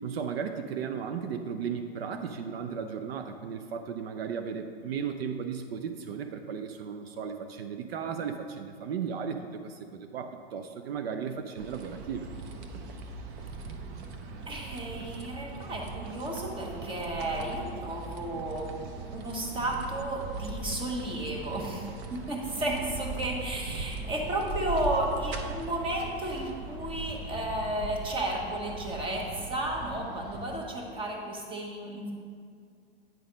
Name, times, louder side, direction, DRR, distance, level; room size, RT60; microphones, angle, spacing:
voice 1, 0.0-12.3, right 7 dB, 70° right, 7 dB, 0.6 m, -35 dB
sound 1, 11.6-30.6, right 3 dB, 35° right, 0.7 m, -39 dB
voice 2, 14.5-18.7 19.1-32.1, right 1 dB, 15° right, -1 dB, 1.2 m, -33 dB
9.2 x 4.1 x 5.1 m, 2.2 s
hypercardioid pair, 115°, 31 cm